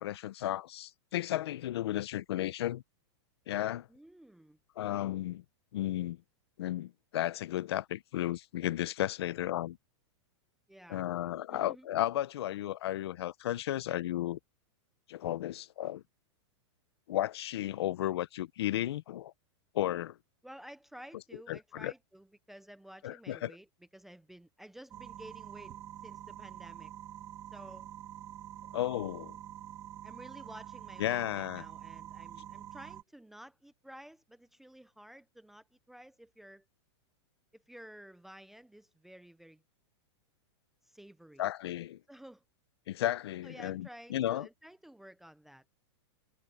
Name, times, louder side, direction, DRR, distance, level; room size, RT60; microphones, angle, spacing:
voice 1, 0.0-2.8 3.5-3.9 4.8-5.4 5.7-6.2 6.6-9.8 10.9-14.4 15.1-16.0 17.1-19.3 19.7-20.1 21.5-21.9 23.0-23.5 28.7-29.3 31.0-31.6 41.4-42.0 42.9-44.5, left 13 dB, 60° left, 0.7 m, -34 dB
voice 2, 3.9-4.6 10.7-11.0 11.5-11.9 20.4-23.7 23.9-26.9 27.5-27.9 30.0-36.7 37.5-39.6 40.8-41.4 42.1-42.4 43.4-45.6, equal, ahead, 0.5 m, -52 dB
sound 1, 24.9-33.0, right 12 dB, 20° right, 1.4 m, -47 dB
supercardioid pair, 175°, 15 cm